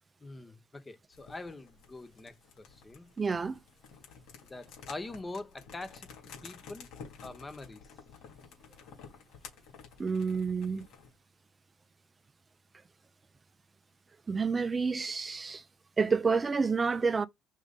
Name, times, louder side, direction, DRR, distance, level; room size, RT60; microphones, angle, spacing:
voice 1, 0.2-3.1 4.4-6.1 6.4-6.9 7.2-7.8, left 2 dB, 20° left, 1.3 m, -44 dB
sound 1, 1.1-11.2, left 6 dB, 85° left, 3.4 m, -52 dB
voice 2, 3.2-3.6 10.0-10.9 14.3-15.6 16.0-17.3, right 5 dB, 30° right, 0.6 m, -29 dB
5.5 x 3.4 x 5.1 m
cardioid pair, 95°, 0 cm